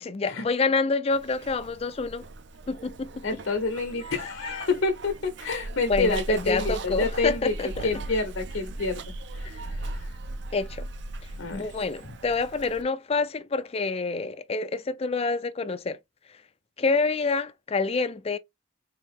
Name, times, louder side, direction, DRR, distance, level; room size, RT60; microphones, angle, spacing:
voice 1, 0.0-2.2 2.7-3.4 5.9-7.9 9.4-9.5 10.5-10.9 11.5-16.0 16.8-18.4, left 4 dB, 30° left, 0.4 m, -27 dB
Zipper (clothing), 1.1-12.8, right 2 dB, 60° right, 0.5 m, -38 dB
voice 2, 3.2-7.5 7.8-9.0 9.4-9.6 9.9-10.1 11.4-11.6, left 3 dB, 75° left, 0.8 m, -28 dB
3.9 x 2.7 x 3.6 m
head